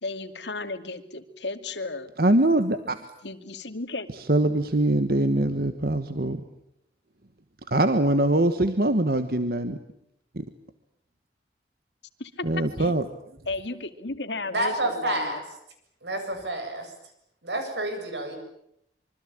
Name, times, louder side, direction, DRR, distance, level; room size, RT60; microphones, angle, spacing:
voice 1, 0.0-2.1 3.2-4.1 12.2-12.5 12.8-12.9 13.5-15.4, left 3 dB, 90° left, 8 dB, 2.5 m, -34 dB
voice 2, 2.2-3.0 4.2-6.4 7.7-9.8 10.3-10.4 12.4-13.0, right 1 dB, 55° right, 9 dB, 1.4 m, -23 dB
voice 3, 14.5-15.4 16.0-16.9 17.4-18.4, right 1 dB, 80° right, 6 dB, 7.8 m, -29 dB
26.5 x 24.5 x 8.8 m, 0.75 s
head